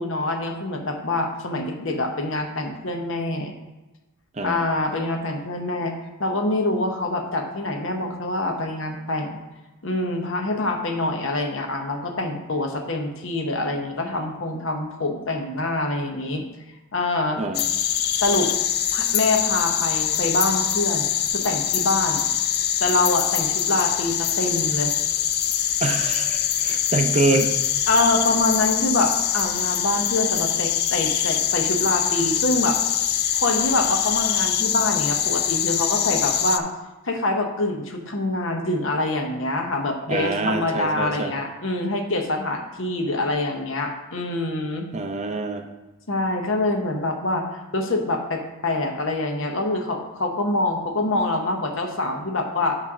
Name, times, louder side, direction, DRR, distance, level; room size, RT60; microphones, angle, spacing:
voice 1, 0.0-3.5 4.4-5.9 6.2-9.4 9.8-16.4 16.9-17.4 18.1-18.5 18.9-22.3 22.8-24.9 27.9-32.8 33.3-36.7 37.0-44.9 46.1-47.5 47.7-52.8, left 2 dB, 60° left, 4 dB, 0.9 m, -25 dB
voice 2, 17.4-17.7 25.8-27.6 40.1-41.3 44.9-45.6, right 2 dB, 30° right, 5 dB, 0.5 m, -25 dB
sound 1, 17.5-36.6, left 10 dB, 45° left, 0.4 m, -23 dB
8.6 x 3.3 x 6.0 m, 1.1 s
head